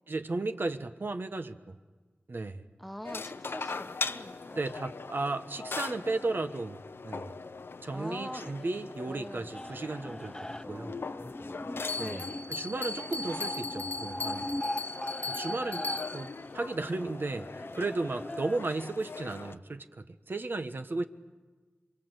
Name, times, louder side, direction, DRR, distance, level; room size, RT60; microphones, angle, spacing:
voice 1, 0.1-1.8 2.3-2.7 4.6-7.3 7.8-11.0 12.0-12.2 12.5-14.5 15.3-17.5 17.7-21.0, right 3 dB, 65° right, 8 dB, 1.4 m, -34 dB
voice 2, 2.8-4.6 7.9-8.7 9.0-9.6 12.0-12.4, equal, ahead, 9 dB, 1.2 m, -43 dB
sound 1, 3.0-19.6, left 4 dB, 90° left, 0.9 m, -41 dB
sound 2, 9.5-18.6, left 1 dB, 20° left, 0.9 m, -40 dB
Bell, 11.9-16.4, left 2 dB, 45° left, 1.1 m, -38 dB
27.5 x 24.5 x 8.2 m, 1.3 s
wide cardioid pair, 65°, 4 cm